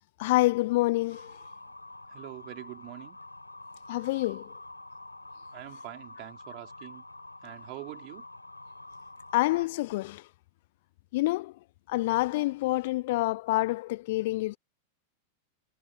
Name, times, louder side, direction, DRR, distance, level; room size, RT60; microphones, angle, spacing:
voice 1, 0.2-1.3 3.9-4.4 9.3-10.2 11.1-11.5 11.9-14.6, left 19 dB, 50° left, 0.8 m, -27 dB
Motor vehicle (road) / Siren, 1.1-9.6, left 2 dB, 85° left, 4.2 m, -47 dB
voice 2, 2.1-3.2 5.5-7.0 7.4-8.2, right 26 dB, 40° right, 4.8 m, -44 dB
figure-of-eight pair, 90°, 0 cm